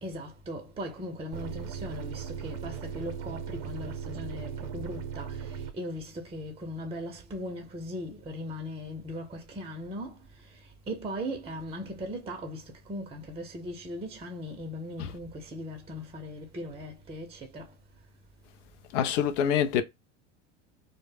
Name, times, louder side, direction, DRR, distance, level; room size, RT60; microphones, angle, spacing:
voice 1, 0.0-17.7, equal, 15° right, 0.6 m, -39 dB
sound 1, 1.3-5.7, right 7 dB, 60° right, 0.6 m, -38 dB
voice 2, 18.9-19.8, left 8 dB, 75° left, 0.6 m, -25 dB
2.1 x 2.0 x 3.2 m
hypercardioid pair, 90°, 36 cm